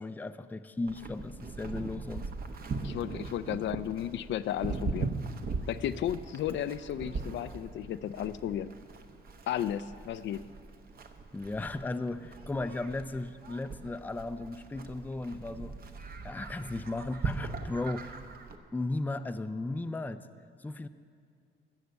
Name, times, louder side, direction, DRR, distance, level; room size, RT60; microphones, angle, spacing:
voice 1, 0.0-2.3 11.3-15.7 16.2-18.1 18.7-20.2 20.6-20.9, left 2 dB, 10° left, 11 dB, 0.4 m, -36 dB
Livestock farm animals working animals, 0.9-18.6, right 4 dB, 50° right, 1.0 m, -40 dB
voice 2, 2.8-5.1 5.7-8.8 9.5-10.5, left 10 dB, 70° left, 13 dB, 0.4 m, -34 dB
14.5 x 6.5 x 8.0 m, 2.3 s
cardioid pair, 90°, 20 cm